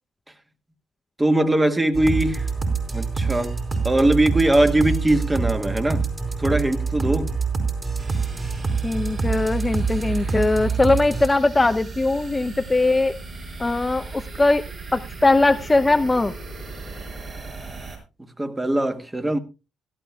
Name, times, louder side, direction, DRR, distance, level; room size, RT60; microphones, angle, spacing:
voice 1, 1.2-2.5 2.9-6.1 6.4-7.4 18.4-19.4, right 1 dB, 15° right, 1.7 m, -21 dB
sound 1, 2.0-11.3, right 5 dB, 35° right, 4.3 m, -26 dB
sound 2, 8.0-18.0, right 3 dB, 55° right, 5.5 m, -37 dB
voice 2, 8.8-13.2 13.6-14.7 14.9-16.3, left 2 dB, 20° left, 0.6 m, -20 dB
17.0 x 12.5 x 2.3 m
supercardioid pair, 60°, 0 cm